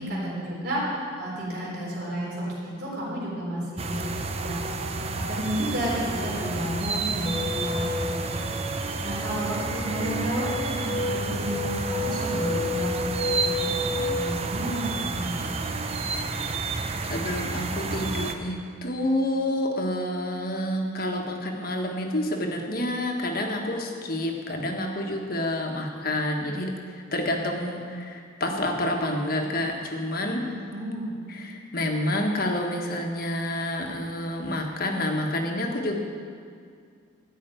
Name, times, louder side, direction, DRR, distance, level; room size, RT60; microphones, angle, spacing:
voice 1, 0.0-4.1 4.3-4.6 5.1-7.9 8.2-15.5 30.4-31.1, right 1 dB, 50° right, -6 dB, 3.9 m, -32 dB
sound 1, 3.8-18.3, right 3 dB, 30° right, 0.6 m, -30 dB
sound 2, 7.3-14.4, left 3 dB, 5° left, 1.3 m, -32 dB
voice 2, 16.1-30.4 31.3-35.9, left 1 dB, 45° left, 2 dB, 1.3 m, -29 dB
13.5 x 5.6 x 9.0 m, 2.2 s
head